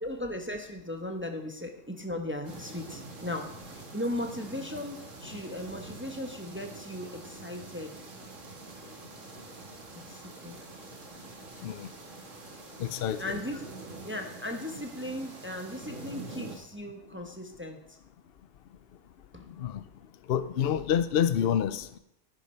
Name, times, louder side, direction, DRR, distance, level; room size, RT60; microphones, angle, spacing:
voice 1, 0.0-8.0 10.1-10.5 13.2-13.6 14.0-18.0 19.3-19.5, left 1 dB, 10° right, 4 dB, 0.9 m, -37 dB
sound 1, 2.4-16.6, right 3 dB, 80° right, 2.1 m, -45 dB
voice 2, 12.8-13.4 19.6-19.8 20.3-22.0, left 9 dB, 60° left, 13 dB, 0.7 m, -28 dB
11.0 x 10.0 x 4.4 m, 0.79 s
omnidirectional pair, 1.3 m